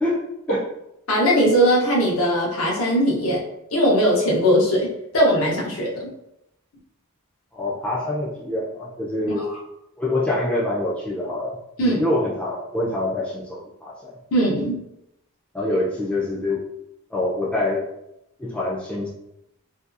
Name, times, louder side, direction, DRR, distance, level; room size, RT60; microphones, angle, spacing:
voice 1, 0.0-0.6 7.5-9.5 10.0-14.1 15.5-16.6 17.1-17.9 18.4-19.1, left 1 dB, 5° left, -6 dB, 0.4 m, -25 dB
voice 2, 1.1-3.4 3.7-6.1 9.4-9.5 11.8-12.0 14.3-14.8, equal, 65° left, -3 dB, 0.7 m, -19 dB
2.6 x 2.3 x 2.4 m, 0.84 s
head